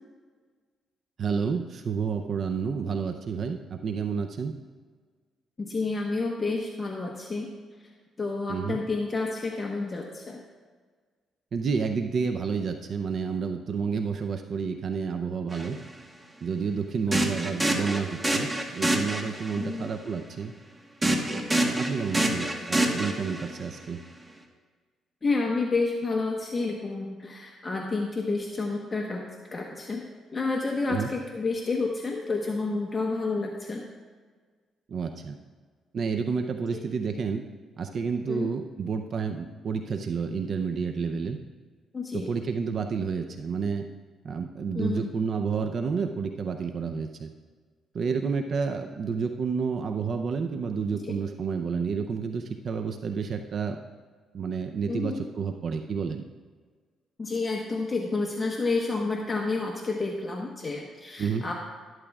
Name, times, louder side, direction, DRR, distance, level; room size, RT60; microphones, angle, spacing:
voice 1, 1.2-4.5 8.5-8.8 11.5-15.8 16.4-18.5 18.8-20.5 21.5-24.0 30.9-31.1 34.9-35.4 35.9-37.4 37.8-41.4 42.1-43.8 44.2-47.3 47.9-53.8 54.3-56.2 61.2-61.4, right 5 dB, 55° right, 6 dB, 0.6 m, -30 dB
voice 2, 5.6-7.5 8.2-10.4 19.6-19.9 22.6-22.7 25.2-29.2 29.5-30.0 30.3-33.9 36.7-36.8 38.3-38.5 41.9-42.3 44.7-45.1 51.0-51.1 54.9-55.2 57.2-61.5, left 3 dB, 30° left, 0 dB, 1.1 m, -30 dB
sound 1, 15.5-15.7 17.1-19.6 21.0-23.6, right 1 dB, 15° right, 1.3 m, -27 dB
12.5 x 12.5 x 2.4 m, 1.5 s
cardioid pair, 90°, 0 cm